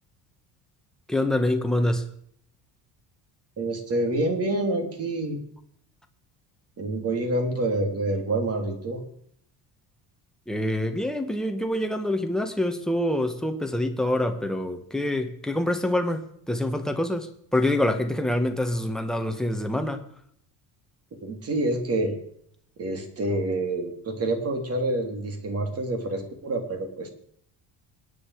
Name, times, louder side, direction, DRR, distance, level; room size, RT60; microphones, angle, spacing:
voice 1, 1.1-2.1 10.5-20.0, left 1 dB, ahead, 1.6 m, -26 dB
voice 2, 3.6-5.4 6.8-9.0 21.2-22.2 22.8-27.1, right 2 dB, 35° right, 3.4 m, -27 dB
26.0 x 10.0 x 4.9 m
cardioid pair, 145°, 40 cm